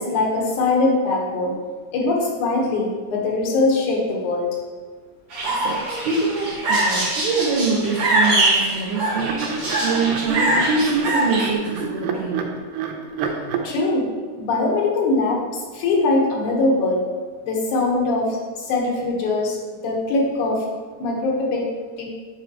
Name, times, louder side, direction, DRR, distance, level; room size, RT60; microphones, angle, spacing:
voice 1, 0.0-1.5 1.9-4.5 13.6-14.1 14.4-15.4 15.7-17.0 17.4-19.6 19.8-20.7 21.0-21.6 22.0-22.1, left 2 dB, 75° left, -2 dB, 2.6 m, -21 dB
sound 1, 5.3-11.5, right 2 dB, 50° right, 2.4 m, -23 dB
voice 2, 5.5-12.5, right 3 dB, 70° right, -5 dB, 2.3 m, -24 dB
sound 2, 8.6-8.8 9.1-13.6, right 5 dB, 90° right, 2.1 m, -28 dB
7.6 x 4.9 x 3.0 m, 1.5 s
omnidirectional pair, 3.5 m